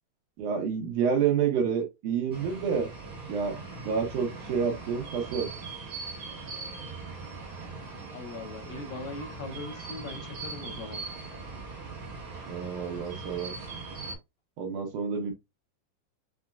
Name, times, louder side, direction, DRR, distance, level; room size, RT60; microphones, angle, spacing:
voice 1, 0.4-2.9 3.3-5.5 12.5-13.5 14.6-15.3, right 6 dB, 75° right, 2.1 m, -29 dB
sound 1, 2.3-14.2, right 4 dB, 50° right, 1.5 m, -40 dB
voice 2, 8.1-11.1, left 3 dB, 80° left, 2.5 m, -40 dB
6.0 x 2.1 x 2.3 m
omnidirectional pair, 4.0 m